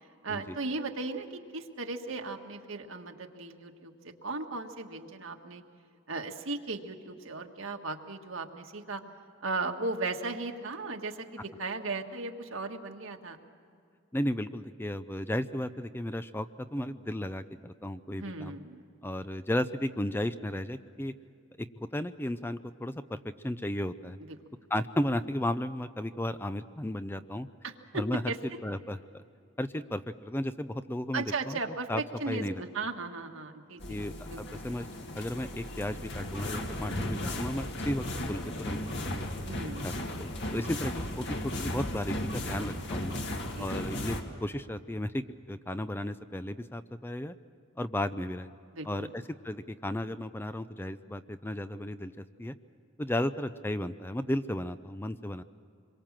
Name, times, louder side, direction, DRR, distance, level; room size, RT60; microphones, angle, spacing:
voice 1, 0.2-5.6 6.1-9.0 9.4-13.4 18.2-18.8 24.3-24.4 27.6-28.4 31.1-31.9 32.2-34.0 34.3-34.6 39.4-40.0 43.5-43.7 48.7-49.1, right 3 dB, 75° right, 4 dB, 1.7 m, -36 dB
voice 2, 14.1-18.6 19.0-21.1 21.6-24.2 24.7-27.5 27.9-28.2 28.6-29.2 29.6-31.6 31.9-32.6 33.9-34.9 35.1-39.3 39.8-43.2 43.6-47.3 47.8-48.5 48.8-52.5 53.0-55.4, left 1 dB, 10° left, 11 dB, 0.5 m, -34 dB
sound 1, 33.8-44.2, left 1 dB, 55° left, 2.1 m, -35 dB
26.5 x 23.0 x 7.5 m, 2.5 s
head